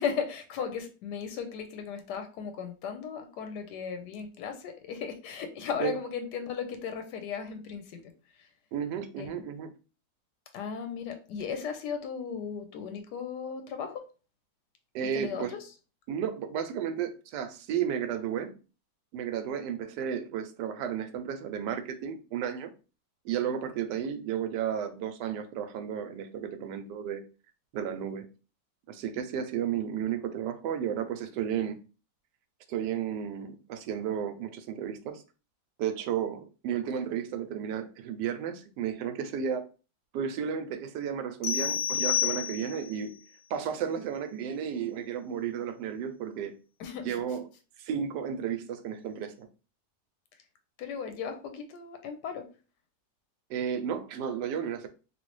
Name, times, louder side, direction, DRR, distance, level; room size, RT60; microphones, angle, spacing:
voice 1, 0.0-8.0 8.4-8.5 9.2-9.4 10.5-14.0 15.1-15.6 46.8-47.2 50.8-52.5, left 6 dB, 90° left, 1.2 m, -36 dB
voice 2, 8.7-9.7 14.9-15.5 16.1-18.6 19.1-22.7 23.2-27.2 27.7-28.3 28.9-31.8 32.7-35.2 35.8-39.7 40.1-43.2 43.5-46.6 47.0-47.4 47.8-49.5 53.5-54.9, right 8 dB, 85° right, 1.2 m, -33 dB
sound 1, 41.4-43.0, left 9 dB, 70° left, 0.9 m, -29 dB
3.1 x 2.7 x 3.1 m
omnidirectional pair, 1.8 m